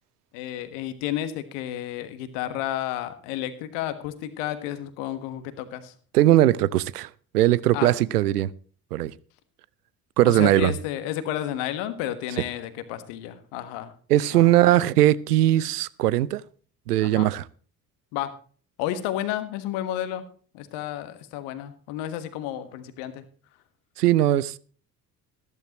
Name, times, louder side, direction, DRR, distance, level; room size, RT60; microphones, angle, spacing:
voice 1, 0.3-5.9 7.7-7.9 10.2-13.9 14.3-14.7 17.0-17.3 18.1-18.3 18.8-20.2 20.5-23.2, left 12 dB, 65° left, 1.6 m, -31 dB
voice 2, 6.1-8.5 8.9-9.1 10.2-10.7 14.1-16.4 16.9-17.4 24.0-24.6, right 14 dB, 80° right, 0.6 m, -20 dB
14.0 x 13.5 x 3.0 m
figure-of-eight pair, 50°, 46 cm